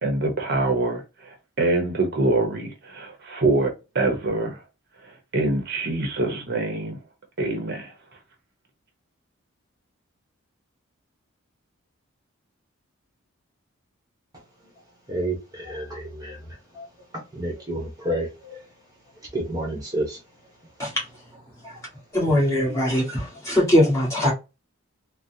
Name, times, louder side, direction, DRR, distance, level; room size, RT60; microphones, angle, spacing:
voice 1, 0.0-4.6 5.0-7.0 7.4-7.9, right 2 dB, 50° right, 0.8 m, -25 dB
voice 2, 15.1-16.4 16.7-16.8 17.3-18.6 19.3-20.2 21.6-21.8 22.7-22.8, right 1 dB, 15° right, 1.0 m, -30 dB
voice 3, 22.1-24.3, equal, 15° left, 1.5 m, -21 dB
3.9 x 2.1 x 2.7 m
head